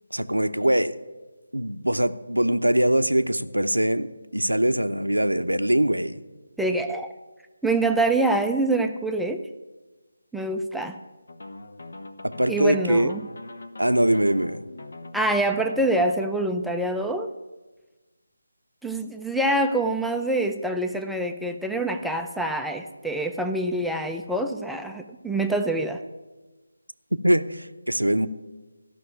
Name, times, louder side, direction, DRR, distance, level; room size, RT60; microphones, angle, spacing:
voice 1, 0.1-0.9 1.5-6.2 12.2-13.1 13.8-14.7 27.2-28.3, right 1 dB, 90° right, 10 dB, 0.7 m, -22 dB
voice 2, 6.6-7.1 7.6-9.4 10.3-11.0 12.5-13.3 15.1-17.3 18.8-26.0, right 2 dB, ahead, 3 dB, 0.4 m, -25 dB
sound 1, 11.3-16.3, left 2 dB, 65° left, 1.0 m, -42 dB
14.0 x 6.1 x 8.5 m, 1.2 s
figure-of-eight pair, 155°, 0 cm